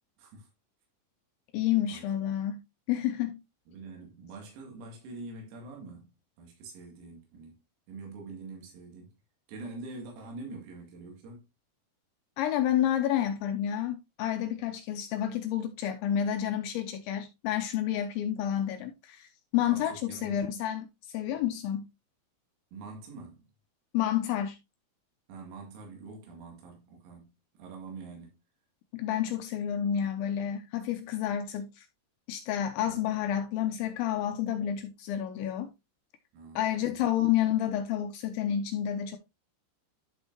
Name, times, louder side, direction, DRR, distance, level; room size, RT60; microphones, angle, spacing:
voice 1, 0.2-0.5 1.9-2.1 3.7-7.6 7.9-9.1 9.5-11.4 19.6-20.5 22.7-23.5 25.3-28.4 32.8-33.3 36.3-37.1, right 3 dB, 85° right, 5.0 m, -45 dB
voice 2, 1.5-2.6 2.9-3.4 12.4-21.9 23.9-24.6 28.9-31.9 32.3-35.7 36.6-39.2, left 10 dB, 85° left, 2.7 m, -30 dB
11.5 x 5.5 x 2.8 m
omnidirectional pair, 6.0 m